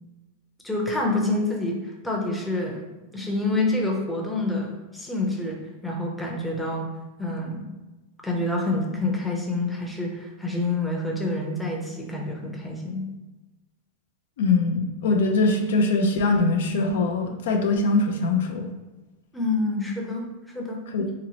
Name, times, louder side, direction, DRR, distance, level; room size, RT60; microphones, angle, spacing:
voice 1, 0.6-2.9 3.1-6.9 7.2-7.7 8.2-13.1 19.3-20.8, left 2 dB, 5° left, -2 dB, 0.6 m, -27 dB
voice 2, 14.4-18.7 20.9-21.0, left 3 dB, 80° left, 4 dB, 0.4 m, -22 dB
3.0 x 2.9 x 2.8 m, 1.1 s
supercardioid pair, 135°, 0 cm